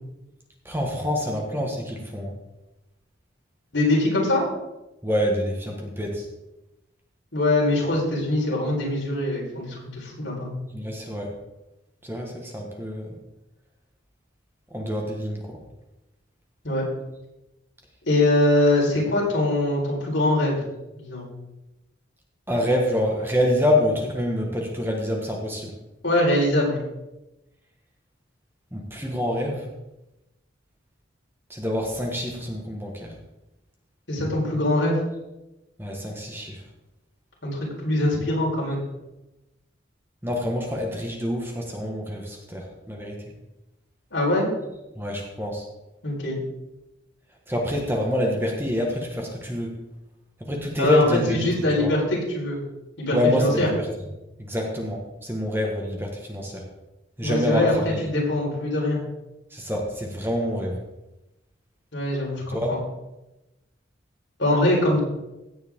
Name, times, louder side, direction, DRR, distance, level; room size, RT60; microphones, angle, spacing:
voice 1, 0.6-2.3 5.0-6.2 10.7-11.3 12.0-13.1 14.7-15.4 22.5-25.7 28.7-29.7 31.5-33.1 35.8-36.6 40.2-43.2 45.0-45.6 47.5-49.7 50.5-51.5 51.8-51.9 53.1-53.8 54.5-56.6 57.2-58.0 59.5-60.7 62.5-62.8, left 1 dB, 10° right, 0 dB, 1.5 m, -26 dB
voice 2, 3.7-4.4 7.3-10.5 16.6-16.8 18.0-20.6 21.0-21.3 26.0-26.8 34.1-35.0 37.4-38.8 44.1-44.5 46.0-46.4 50.8-52.6 53.0-53.7 57.2-57.7 58.0-59.0 61.9-62.8 64.4-65.0, left 1 dB, 70° left, -3 dB, 4.4 m, -23 dB
16.5 x 8.0 x 3.7 m, 0.96 s
head